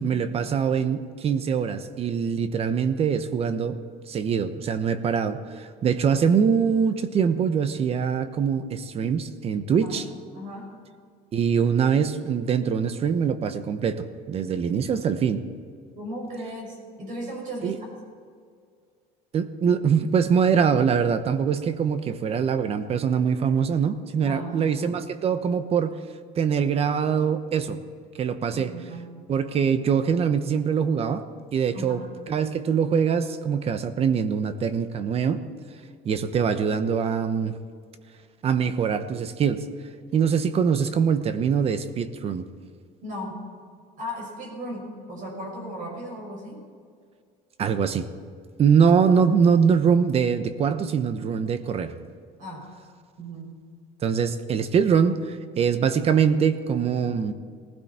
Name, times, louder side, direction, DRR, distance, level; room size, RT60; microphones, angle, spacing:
voice 1, 0.0-3.8 4.1-10.0 11.3-15.4 17.6-17.8 19.3-25.9 26.4-27.8 28.2-28.7 29.3-31.2 31.5-32.0 32.3-35.4 36.0-37.6 38.4-39.7 40.1-42.4 47.6-48.1 48.6-51.9 54.0-57.3, right 6 dB, 35° right, 11 dB, 0.9 m, -23 dB
voice 2, 9.7-10.1 10.3-10.8 15.9-17.9 24.2-24.7 28.5-29.2 31.7-32.1 43.0-43.4 44.0-46.6 52.4-52.7 53.2-53.6, equal, 50° right, 0 dB, 5.8 m, -36 dB
19.5 x 16.0 x 4.4 m, 2.1 s
cardioid pair, 135°, 18 cm